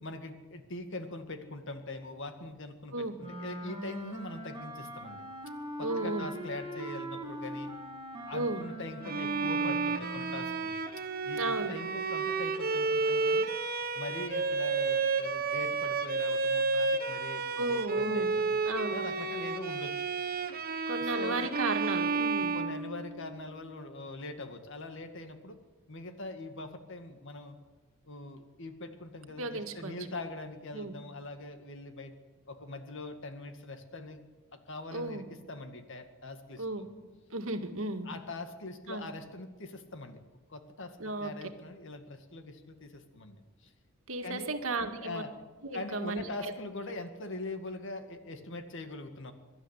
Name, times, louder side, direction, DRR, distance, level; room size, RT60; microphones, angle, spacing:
voice 1, 0.0-5.2 5.8-7.7 8.2-10.7 11.2-13.5 13.9-18.3 18.9-20.1 21.0-21.5 22.4-25.6 25.9-27.6 28.1-32.1 32.5-34.2 34.5-36.8 38.0-40.2 40.5-43.7 44.2-44.5 44.8-45.3 45.7-49.3, left 2 dB, 60° left, 7 dB, 2.1 m, -42 dB
Wind instrument woodwind instrument, 3.2-10.6, right 1 dB, 25° right, 2.2 m, -41 dB
voice 2, 5.8-6.3 8.3-8.6 11.4-11.7 17.6-18.3 18.7-19.0 20.9-22.5 29.4-29.9 30.7-30.9 34.9-35.2 36.6-36.9 37.3-38.1 38.9-39.1 41.0-41.3 44.1-45.2 45.6-46.5, right 2 dB, 70° right, 6 dB, 1.9 m, -34 dB
Bowed string instrument, 9.0-23.3, right 4 dB, 45° right, 1.3 m, -31 dB
23.0 x 12.0 x 9.9 m, 1.3 s
head